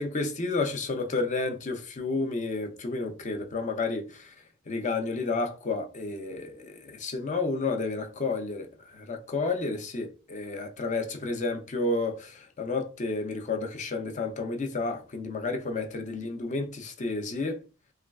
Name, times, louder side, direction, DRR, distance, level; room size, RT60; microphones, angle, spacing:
voice 1, 0.0-4.3 4.7-8.7 8.9-17.6, left 3 dB, 35° left, 0.5 m, -31 dB
3.2 x 2.2 x 2.3 m
head